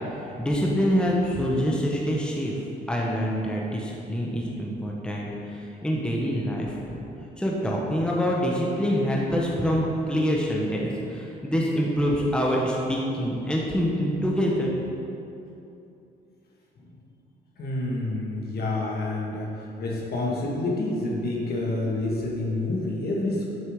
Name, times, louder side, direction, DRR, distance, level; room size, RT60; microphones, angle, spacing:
voice 1, 0.4-2.5 2.9-7.0 7.4-14.7, equal, 5° left, -3 dB, 1.1 m, -25 dB
voice 2, 17.6-23.4, left 2 dB, 60° left, -3 dB, 1.7 m, -28 dB
7.7 x 5.7 x 3.7 m, 2.8 s
cardioid pair, 80°, 18 cm